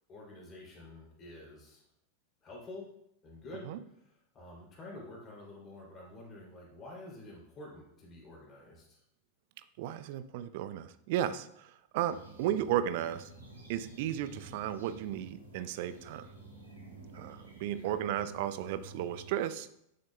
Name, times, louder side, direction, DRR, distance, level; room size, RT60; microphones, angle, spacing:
voice 1, 0.1-1.8 2.4-2.9 3.2-9.0 17.8-18.0, left 2 dB, 25° left, -3 dB, 2.9 m, -49 dB
voice 2, 9.8-13.3 13.7-16.3 17.1-19.7, right 11 dB, 50° right, 13 dB, 0.4 m, -34 dB
sound 1, 12.1-19.3, right 2 dB, 80° right, 2.2 m, -51 dB
9.4 x 6.5 x 2.3 m, 0.76 s
figure-of-eight pair, 90°, 0 cm